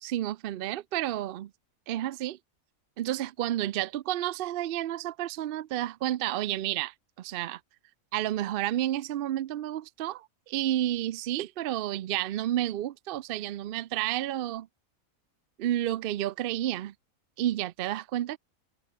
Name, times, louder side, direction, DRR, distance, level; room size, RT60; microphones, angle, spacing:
voice 1, 0.0-1.5 1.9-2.4 3.0-7.6 8.1-14.7 15.6-16.9 17.4-18.4, right 13 dB, 70° right, 0.5 m, -31 dB
omnidirectional pair, 1.5 m